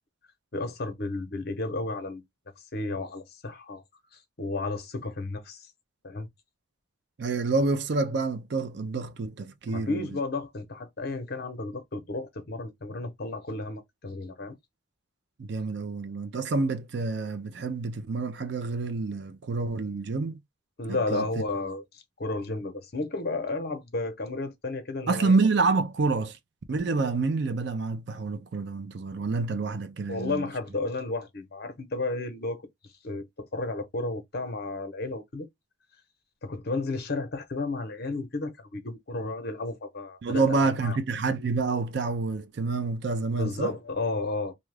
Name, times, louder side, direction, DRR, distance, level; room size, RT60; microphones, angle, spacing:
voice 1, 0.5-2.2 2.7-3.8 4.4-5.6 6.0-6.3 9.7-14.6 20.8-25.4 30.1-32.6 33.0-33.3 33.5-35.5 36.4-41.0 43.4-44.5, left 2 dB, 50° left, 0.7 m, -32 dB
voice 2, 7.2-10.1 15.4-20.4 20.9-21.3 25.1-26.4 26.7-30.4 40.2-43.7, right 3 dB, 55° right, 0.4 m, -28 dB
2.7 x 2.3 x 3.2 m
head